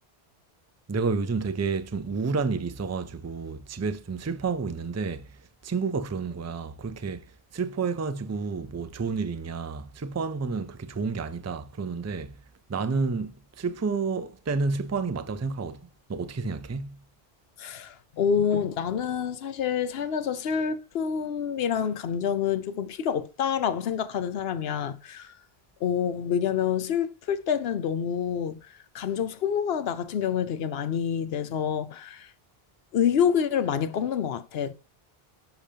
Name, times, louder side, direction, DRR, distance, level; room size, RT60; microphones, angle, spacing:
voice 1, 0.9-7.3 7.5-12.4 12.7-17.0, right 4 dB, 25° right, 0.3 m, -30 dB
voice 2, 17.6-25.3 25.8-32.3 32.9-34.7, left 8 dB, 75° left, 0.9 m, -27 dB
10.5 x 5.0 x 2.8 m
omnidirectional pair, 1.0 m